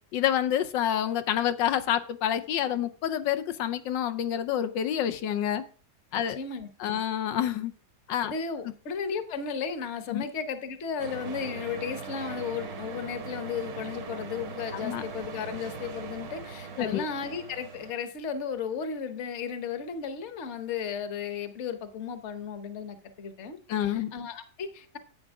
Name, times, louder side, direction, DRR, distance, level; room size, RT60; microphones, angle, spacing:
voice 1, 0.1-5.6 6.1-6.4 6.8-7.7 8.1-8.3 10.1-10.2 14.8-15.0 16.8-17.0 23.7-24.1, left 10 dB, 85° left, 11 dB, 1.4 m, -28 dB
voice 2, 6.1-7.0 8.2-25.0, left 6 dB, 45° left, 9 dB, 1.1 m, -35 dB
sound 1, 11.0-17.9, right 5 dB, 75° right, 2.0 m, -40 dB
10.5 x 8.5 x 3.6 m, 0.40 s
omnidirectional pair, 1.9 m